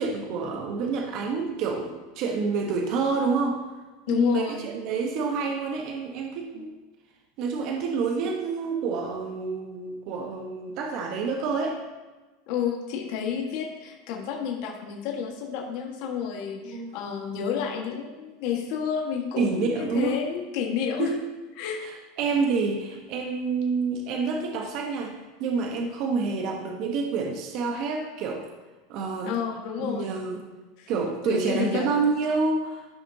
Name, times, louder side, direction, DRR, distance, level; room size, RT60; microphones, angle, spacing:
voice 1, 0.0-3.6 4.1-6.7 7.4-11.8 16.7-16.9 19.4-20.2 21.0-21.2 21.8-28.5 28.9-29.4 29.8-30.4 30.9-32.9, right 4 dB, 55° right, 2 dB, 1.1 m, -28 dB
voice 2, 4.1-4.7 6.5-6.6 12.5-21.1 21.6-21.8 29.2-30.1 30.8-30.9 31.2-31.8, left 7 dB, 60° left, 0 dB, 1.6 m, -30 dB
14.5 x 5.8 x 2.8 m, 1.2 s
supercardioid pair, 125°, 0 cm